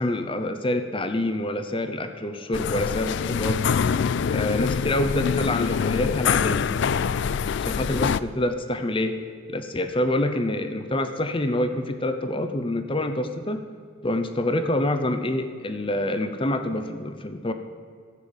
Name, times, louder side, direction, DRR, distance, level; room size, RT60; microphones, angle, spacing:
voice 1, 0.0-3.6 4.3-6.7 7.6-9.2 9.5-13.6 14.0-17.5, left 1 dB, 25° left, 7 dB, 0.7 m, -26 dB
sound 1, 2.5-8.2, left 6 dB, 55° left, 0.3 m, -25 dB
12.5 x 8.4 x 7.3 m, 2.1 s
head